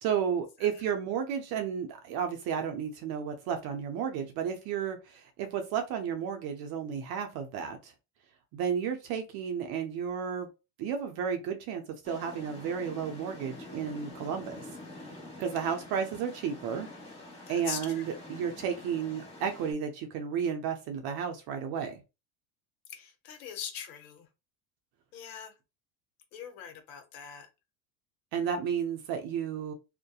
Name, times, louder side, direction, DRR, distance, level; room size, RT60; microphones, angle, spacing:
voice 1, 0.0-7.9 8.5-10.5 10.8-14.5 15.4-16.9 17.5-21.9 28.3-29.7, right 7 dB, 55° right, 0.6 m, -32 dB
sound 1, 12.0-19.7, left 2 dB, 15° left, 1.0 m, -47 dB
voice 2, 17.5-18.4 22.9-24.3 25.1-25.5 26.3-27.5, left 8 dB, 75° left, 0.8 m, -42 dB
2.7 x 2.1 x 2.3 m
supercardioid pair, 110°, 44 cm